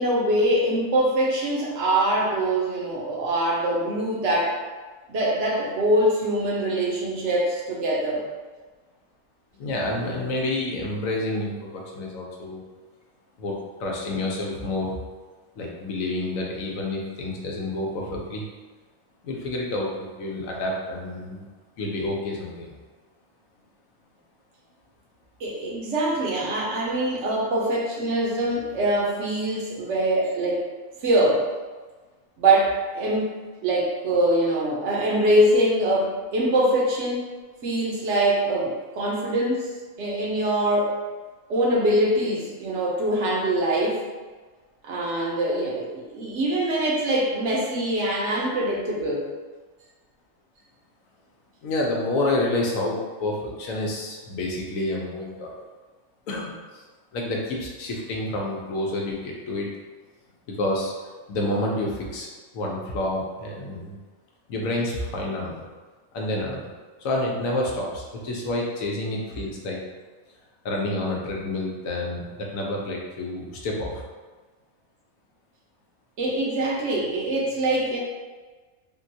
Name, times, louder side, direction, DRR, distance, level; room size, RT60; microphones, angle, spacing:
voice 1, 0.0-4.6 5.1-8.2 25.4-30.7 31.0-31.4 32.4-33.3 33.6-37.3 37.6-39.7 40.0-40.9 41.5-44.0 44.8-49.3 76.2-78.0, right 1 dB, 65° right, -3 dB, 1.0 m, -23 dB
voice 2, 9.6-12.6 13.4-15.0 15.6-18.5 19.2-21.4 21.8-22.7 51.6-55.5 56.3-56.8 57.1-59.7 60.6-60.9 61.3-62.3 62.5-64.0 64.5-65.7 66.1-66.7 67.0-69.8 70.6-74.0, left 1 dB, 90° left, -1 dB, 1.1 m, -29 dB
3.7 x 2.2 x 2.6 m, 1.3 s
omnidirectional pair, 1.4 m